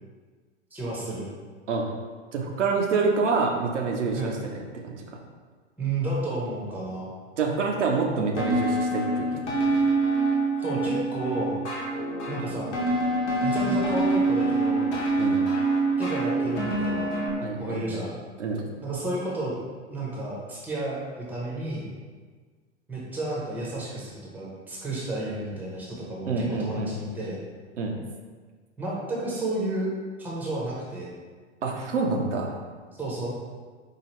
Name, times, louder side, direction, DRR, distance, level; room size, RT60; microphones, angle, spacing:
voice 1, 0.7-1.3 4.1-4.4 5.8-7.1 10.6-11.6 12.3-12.7 13.4-14.9 16.0-17.1 17.6-18.2 18.8-19.5 19.9-21.9 22.9-27.4 28.8-29.9 30.2-31.1 32.9-33.3, right 2 dB, 5° right, -5 dB, 0.7 m, -31 dB
voice 2, 2.3-5.0 7.4-9.6 15.2-15.4 17.4-17.8 18.4-18.6 26.3-26.9 27.8-27.9 31.6-32.6, right 4 dB, 75° right, 1 dB, 0.7 m, -27 dB
sound 1, 8.4-17.3, right 2 dB, 70° left, 1.0 m, -25 dB
4.6 x 2.3 x 3.0 m, 1.5 s
figure-of-eight pair, 100°, 36 cm